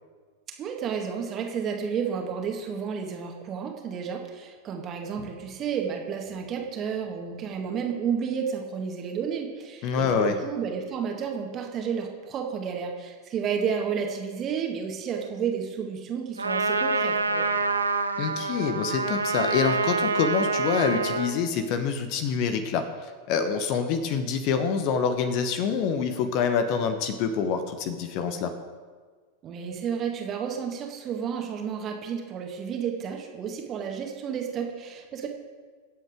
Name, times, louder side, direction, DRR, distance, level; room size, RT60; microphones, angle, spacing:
voice 1, 0.6-17.5 29.4-35.3, right 7 dB, 30° right, 2 dB, 2.0 m, -31 dB
voice 2, 9.8-10.4 18.2-22.8 23.3-28.5, left 6 dB, 45° left, 8 dB, 1.1 m, -26 dB
Trumpet, 16.4-21.4, right 3 dB, 80° right, 0.9 m, -26 dB
24.0 x 8.0 x 3.7 m, 1.5 s
figure-of-eight pair, 90°, 0 cm